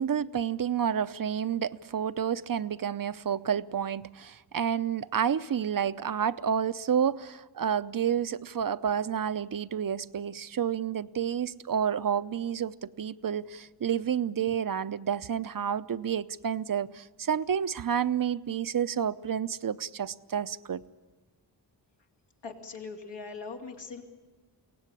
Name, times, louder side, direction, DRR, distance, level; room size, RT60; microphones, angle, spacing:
voice 1, 0.0-20.8, right 8 dB, 55° right, 0.7 m, -30 dB
voice 2, 22.4-24.0, left 4 dB, 85° left, 3.1 m, -41 dB
23.5 x 17.5 x 9.8 m
wide cardioid pair, 85°, 41 cm